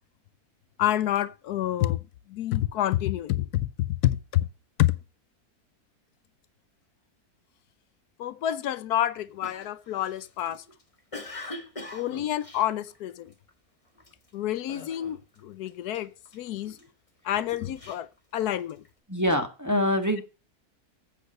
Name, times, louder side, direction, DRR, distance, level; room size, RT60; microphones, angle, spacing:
voice 1, 0.8-2.0 2.3-4.5 4.8-4.9 8.2-10.6 11.9-13.3 14.3-16.8 17.2-18.8, left 13 dB, 80° left, 1.2 m, -28 dB
Cough, 9.4-13.5 14.0-14.3 14.7-15.4 15.7-16.8 17.4-18.9, left 2 dB, 20° left, 1.5 m, -43 dB
voice 2, 19.1-20.2, equal, 10° right, 1.3 m, -24 dB
8.4 x 6.4 x 6.4 m
omnidirectional pair, 1.6 m